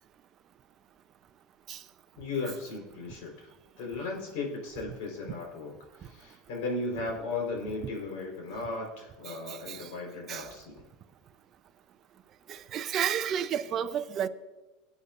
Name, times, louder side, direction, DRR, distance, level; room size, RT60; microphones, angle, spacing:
voice 1, 2.2-3.5 3.8-10.9, left 3 dB, 70° left, 4.5 m, -36 dB
voice 2, 9.3-9.9 10.3-10.5 12.5-14.3, right 9 dB, 40° right, 0.7 m, -32 dB
21.0 x 8.6 x 2.6 m
hypercardioid pair, 90°, 0 cm